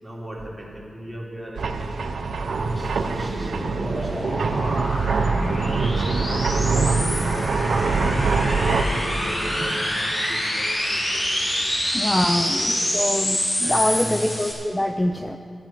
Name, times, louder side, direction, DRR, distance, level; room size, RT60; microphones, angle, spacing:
voice 1, 0.0-2.0 2.4-5.1 5.6-7.1 7.7-11.8 12.1-12.7 13.6-14.2, right 1 dB, 15° right, -3 dB, 3.2 m, -37 dB
sound 1, 1.6-8.8, right 4 dB, 80° right, 0.7 m, -24 dB
sound 2, 2.4-10.0, right 1 dB, 40° right, 1.5 m, -34 dB
sound 3, 2.8-14.5, equal, 35° left, 2.7 m, -27 dB
voice 2, 11.9-15.4, left 1 dB, 15° left, 7 dB, 0.5 m, -24 dB
12.5 x 9.9 x 5.9 m, 2.4 s
cardioid pair, 45°, 0 cm